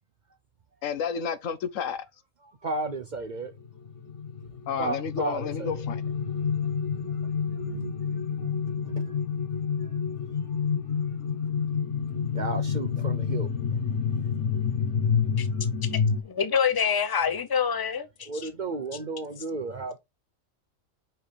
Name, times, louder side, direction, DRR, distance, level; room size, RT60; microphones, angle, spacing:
voice 1, 0.8-2.0 4.7-6.0, left 7 dB, 80° left, 1.1 m, -31 dB
voice 2, 2.6-3.5 4.8-5.7 6.4-6.7 7.4-9.1 12.3-13.5 18.3-20.0, right 3 dB, 50° right, 0.6 m, -34 dB
sound 1, 3.4-16.2, left 6 dB, 65° left, 1.2 m, -29 dB
voice 3, 16.2-18.5, left 7 dB, 25° left, 0.5 m, -26 dB
5.6 x 5.2 x 3.3 m
omnidirectional pair, 1.3 m